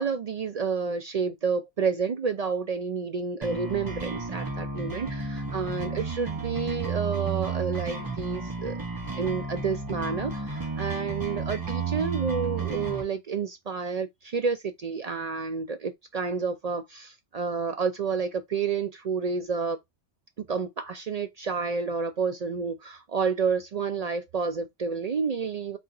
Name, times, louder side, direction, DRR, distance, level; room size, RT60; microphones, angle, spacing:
voice 1, 0.0-8.8 9.1-19.8 20.4-25.8, right 5 dB, 60° right, 0.4 m, -30 dB
sound 1, 3.4-13.0, right 4 dB, 20° right, 0.9 m, -32 dB
3.9 x 2.9 x 3.8 m
omnidirectional pair, 1.2 m